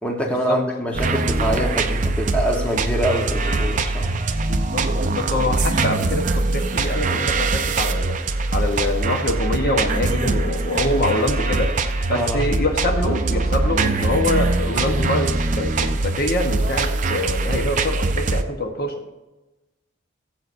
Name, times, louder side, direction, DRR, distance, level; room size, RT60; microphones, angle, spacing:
voice 1, 0.0-4.1 12.1-12.5, equal, 5° left, 0 dB, 1.0 m, -24 dB
sound 1, 0.9-18.4, right 3 dB, 40° right, 0.5 m, -22 dB
voice 2, 4.4-8.2 8.5-11.8 12.1-19.0, left 1 dB, 45° left, 5 dB, 1.0 m, -25 dB
17.5 x 7.9 x 2.6 m, 1.0 s
head